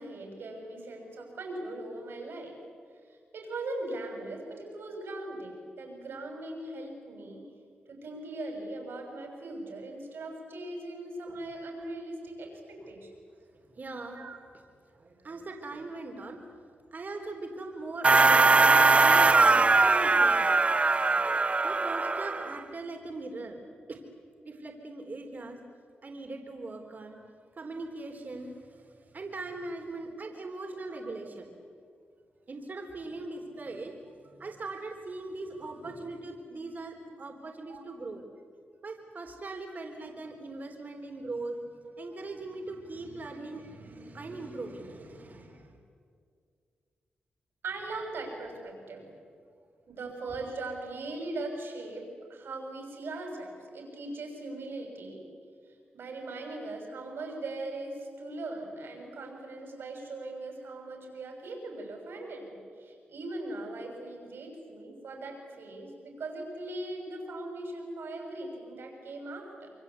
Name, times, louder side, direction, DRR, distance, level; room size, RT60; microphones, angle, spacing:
voice 1, 0.0-2.6 3.1-7.5 7.9-13.1 14.1-14.4 22.0-22.1 27.0-27.1 30.9-31.0 35.4-35.9 37.7-37.8 41.8-41.9 47.6-49.1 49.9-55.3 55.9-69.7, right 2 dB, 75° right, 2 dB, 6.6 m, -40 dB
voice 2, 13.3-14.3 14.5-14.6 14.9-16.4 16.9-20.6 21.0-21.3 21.6-23.6 23.9-24.0 24.5-25.6 26.0-27.1 27.5-31.5 32.5-38.2 38.8-45.8, right 2 dB, 50° right, 3 dB, 3.8 m, -40 dB
sound 1, 18.0-22.6, right 3 dB, 35° right, 0.8 m, -21 dB
26.5 x 24.0 x 8.3 m, 2.2 s
cardioid pair, 70°, 4 cm